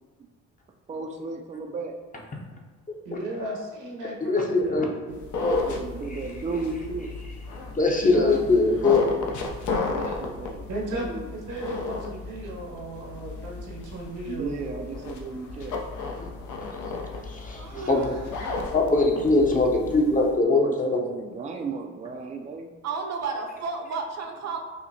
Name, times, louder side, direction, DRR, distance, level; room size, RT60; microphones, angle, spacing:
voice 1, 0.9-2.0 5.6-7.1 9.9-10.6 10.9-11.3 14.3-15.8 20.4-22.7, right 4 dB, 25° right, 1 dB, 0.3 m, -34 dB
voice 2, 3.0-5.2 8.0-8.4 10.7-14.6 16.0-16.3, right 1 dB, 85° right, -2 dB, 1.1 m, -35 dB
voice 3, 4.2-4.9 5.4-5.6 6.1-6.2 7.7-9.3 16.2-16.3 17.3-18.1 18.7-21.0, left 3 dB, 25° left, 0 dB, 0.7 m, -22 dB
sound 1, 5.1-20.4, left 3 dB, 75° left, 0.6 m, -35 dB
voice 4, 17.2-18.6 22.8-24.6, right 4 dB, 60° right, 3 dB, 0.7 m, -33 dB
5.5 x 2.1 x 2.7 m, 1.4 s
cardioid pair, 90°, 30 cm